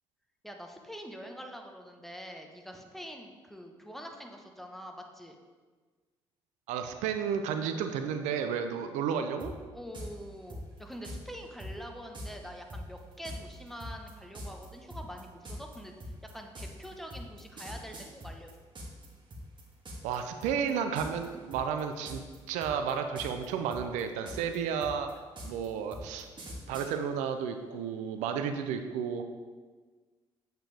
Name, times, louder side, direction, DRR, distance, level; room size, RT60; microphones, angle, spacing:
voice 1, 0.4-5.4 9.7-18.5, equal, ahead, 3 dB, 1.0 m, -45 dB
voice 2, 6.7-9.5 20.0-22.2 22.5-25.1 25.4-26.3 26.7-29.2, right 7 dB, 80° right, 7 dB, 0.4 m, -32 dB
sound 1, 9.4-9.5 9.9-10.1 10.5-11.2 11.6-11.7 12.1-12.3 12.7-19.1 19.3-20.2 20.4-20.7 21.0-21.3 21.5-22.4 22.6-23.5 23.7-26.9, equal, 40° right, 1.7 m, -42 dB
7.7 x 4.4 x 3.4 m, 1.4 s
supercardioid pair, 55°, 12 cm